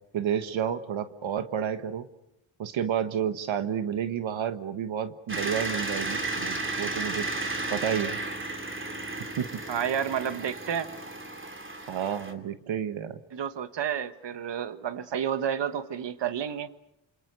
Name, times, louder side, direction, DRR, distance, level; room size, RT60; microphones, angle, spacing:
voice 1, 0.1-2.1 2.6-7.3 7.7-8.2 9.4-9.5 11.9-13.2, right 8 dB, 90° right, 11 dB, 1.5 m, -30 dB
sound 1, 5.3-12.3, right 2 dB, 25° right, 2.9 m, -33 dB
voice 2, 9.7-10.9 13.3-16.7, right 8 dB, 65° right, 12 dB, 1.5 m, -30 dB
28.0 x 27.5 x 6.9 m, 0.80 s
wide cardioid pair, 105°, 46 cm